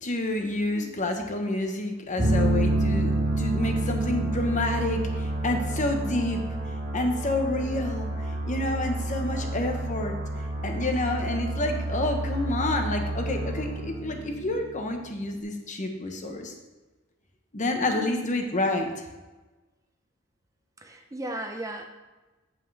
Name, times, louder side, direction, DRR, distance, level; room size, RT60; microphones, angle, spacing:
voice 1, 0.0-6.4 6.9-10.2 10.6-16.5 17.5-18.9, left 2 dB, 35° left, 4 dB, 1.0 m, -29 dB
sound 1, 2.2-14.8, right 1 dB, 35° right, 1.8 m, -29 dB
voice 2, 20.8-21.9, right 1 dB, 15° right, 3 dB, 0.6 m, -36 dB
8.3 x 7.7 x 3.3 m, 1.2 s
head